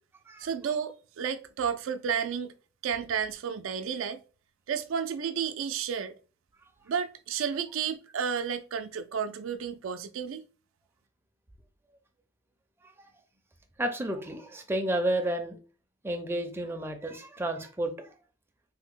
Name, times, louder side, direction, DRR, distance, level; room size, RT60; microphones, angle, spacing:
voice 1, 0.4-2.5 2.8-4.2 4.7-6.1 6.9-10.4, right 7 dB, 85° right, 0.4 m, -32 dB
voice 2, 13.8-15.6 16.0-18.1, right 1 dB, 10° right, 0.4 m, -31 dB
3.3 x 2.0 x 3.5 m
head